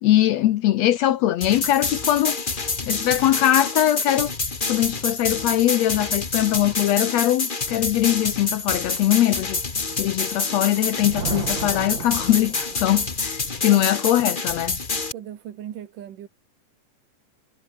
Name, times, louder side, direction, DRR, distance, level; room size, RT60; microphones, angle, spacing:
voice 1, 0.0-4.3 4.7-9.6 9.9-14.8, left 13 dB, 70° left, 1.7 m, -21 dB
sound 1, 1.4-15.1, left 4 dB, 25° left, 1.1 m, -27 dB
Thunder, 10.5-13.2, right 7 dB, 40° right, 2.1 m, -34 dB
voice 2, 15.1-16.3, right 10 dB, 85° right, 3.5 m, -38 dB
omnidirectional pair, 3.7 m